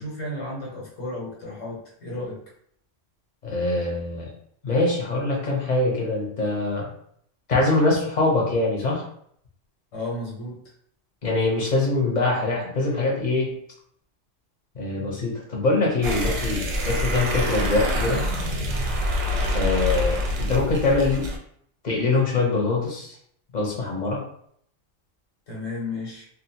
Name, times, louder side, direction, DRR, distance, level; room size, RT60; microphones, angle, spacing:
voice 1, 0.0-2.4 9.9-10.6 25.5-26.3, left 2 dB, 80° left, -3 dB, 1.4 m, -33 dB
voice 2, 3.4-4.3 4.6-6.9 7.5-9.0 11.2-13.5 14.7-18.2 19.5-20.2 20.5-21.2 21.8-23.1 23.5-24.2, left 2 dB, 40° left, -2 dB, 0.7 m, -23 dB
sound 1, 16.0-21.4, left 1 dB, 60° right, 0.8 m, -26 dB
2.7 x 2.3 x 2.7 m, 0.66 s
omnidirectional pair, 1.3 m